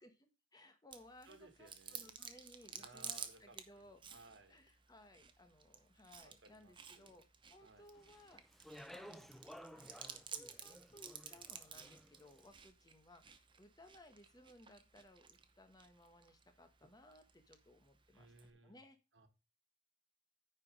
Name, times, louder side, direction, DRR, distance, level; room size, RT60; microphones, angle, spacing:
voice 1, 0.0-4.0 4.5-7.2 7.5-9.1 9.5-18.3 18.6-19.0, left 1 dB, 20° left, 7 dB, 1.1 m, -62 dB
Chewing mastication, 0.9-18.5, right 7 dB, 25° right, 0.8 m, -54 dB
voice 2, 1.2-2.1 2.4-4.6 6.2-7.2 7.6-7.9 9.0-9.3 18.1-18.8 19.1-19.3, right 2 dB, 65° right, 8 dB, 1.7 m, -62 dB
Speech, 7.9-12.3, equal, ahead, 0.4 m, -56 dB
9.4 x 4.9 x 5.1 m, 0.28 s
head